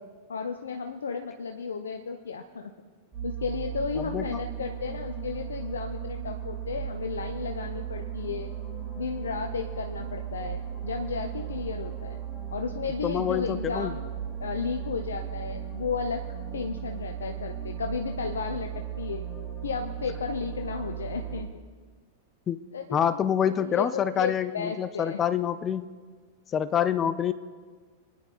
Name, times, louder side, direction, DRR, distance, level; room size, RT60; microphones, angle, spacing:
voice 1, 0.3-2.7 3.2-8.5 9.0-12.2 12.5-14.1 14.4-16.2 16.5-19.2 19.6-21.5 22.7-23.2 23.5-25.2, left 5 dB, 70° left, 5 dB, 0.6 m, -33 dB
sound 1, 3.1-21.4, right 9 dB, ahead, 3.0 m, -36 dB
voice 2, 4.0-4.4 13.0-13.9 22.5-22.6 22.9-25.9 26.5-27.3, left 9 dB, 25° left, 15 dB, 0.4 m, -27 dB
26.5 x 10.0 x 2.5 m, 1.5 s
figure-of-eight pair, 95°, 0 cm